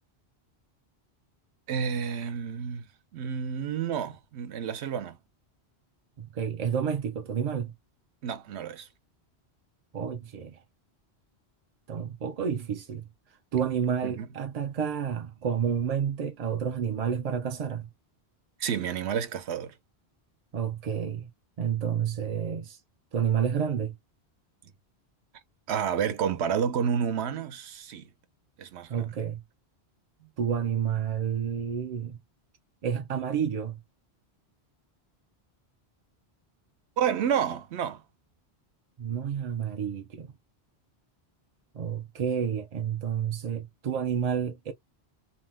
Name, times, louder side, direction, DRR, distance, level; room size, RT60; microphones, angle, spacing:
voice 1, 1.7-2.9 3.1-5.2 8.2-8.9 14.0-14.3 18.6-19.7 25.7-28.1 28.6-29.1 37.0-38.0, right 7 dB, 80° right, 0.9 m, -30 dB
voice 2, 6.2-7.7 9.9-10.6 11.9-13.0 13.5-17.9 20.5-21.3 21.6-22.8 23.1-23.9 28.9-29.4 30.4-32.2 32.8-33.8 39.0-40.3 41.7-44.7, right 8 dB, 55° right, 0.4 m, -30 dB
2.8 x 2.0 x 3.1 m
omnidirectional pair, 1.1 m